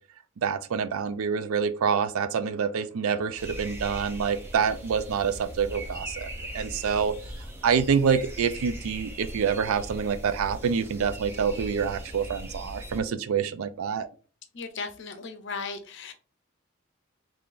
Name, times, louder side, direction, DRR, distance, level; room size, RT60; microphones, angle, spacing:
voice 1, 0.4-6.3 6.5-7.2 7.6-14.1, right 6 dB, 75° right, 13 dB, 0.4 m, -26 dB
sound 1, 3.4-13.0, equal, 10° right, 0.5 m, -39 dB
voice 2, 14.5-16.1, left 4 dB, 55° left, 7 dB, 0.6 m, -36 dB
3.7 x 3.2 x 2.5 m, 0.38 s
head